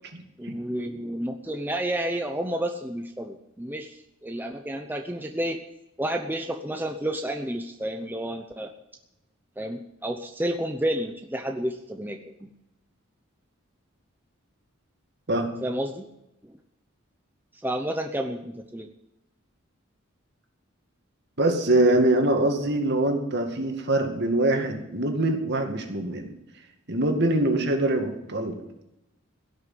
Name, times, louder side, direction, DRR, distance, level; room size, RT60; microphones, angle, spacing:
voice 1, 0.4-5.6 6.0-8.7 9.6-12.5 15.6-16.1 17.6-18.9, right 1 dB, 10° right, 5 dB, 0.7 m, -30 dB
voice 2, 21.4-26.3 26.9-28.5, right 1 dB, 55° right, 4 dB, 2.2 m, -23 dB
16.5 x 6.5 x 9.5 m, 0.88 s
head